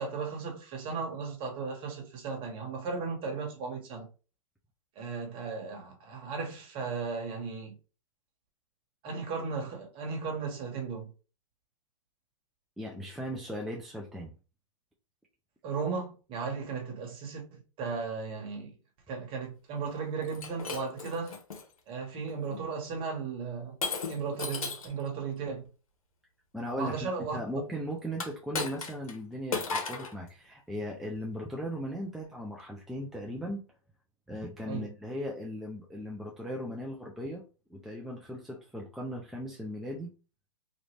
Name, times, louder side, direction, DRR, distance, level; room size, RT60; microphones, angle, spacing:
voice 1, 0.0-4.1 4.9-7.8 9.0-11.1 15.6-18.7 19.1-21.4 21.9-23.7 24.1-25.6 26.8-27.4 34.7-34.9, right 5 dB, 30° right, 1.3 m, -36 dB
voice 2, 12.8-14.3 26.5-33.6 34.3-37.4 37.7-40.1, equal, ahead, 0.4 m, -38 dB
Shatter, 20.3-21.6 22.3-22.6 23.8-25.0 28.1-29.2 29.5-30.2, left 4 dB, 85° left, 1.0 m, -35 dB
3.1 x 2.5 x 3.1 m
hypercardioid pair, 130°, 18 cm